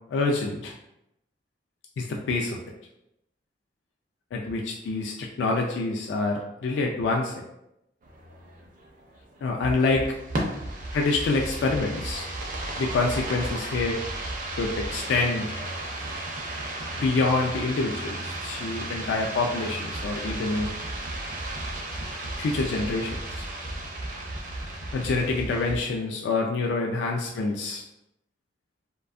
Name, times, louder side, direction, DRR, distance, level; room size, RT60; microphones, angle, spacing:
voice 1, 0.1-0.7 2.0-2.6 4.3-7.4 9.4-10.1 10.9-12.3 12.8-14.0 14.6-15.5 17.0-20.7 22.4-23.4 24.9-27.8, left 3 dB, 75° left, 0 dB, 0.3 m, -26 dB
sound 1, 8.0-25.8, right 1 dB, 50° right, 0.4 m, -34 dB
2.6 x 2.2 x 2.4 m, 0.84 s
head